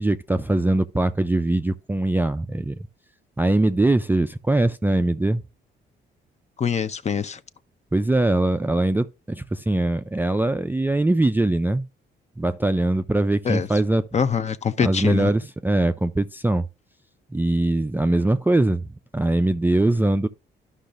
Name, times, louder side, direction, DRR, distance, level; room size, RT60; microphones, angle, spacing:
voice 1, 0.0-2.8 3.4-5.4 7.9-11.9 12.4-14.0 14.8-16.7 17.3-20.3, right 2 dB, 10° right, 0.4 m, -22 dB
voice 2, 6.6-7.4 13.4-13.7 14.1-15.3, left 6 dB, 35° left, 0.6 m, -24 dB
12.0 x 5.5 x 2.5 m
cardioid pair, 90°, 20 cm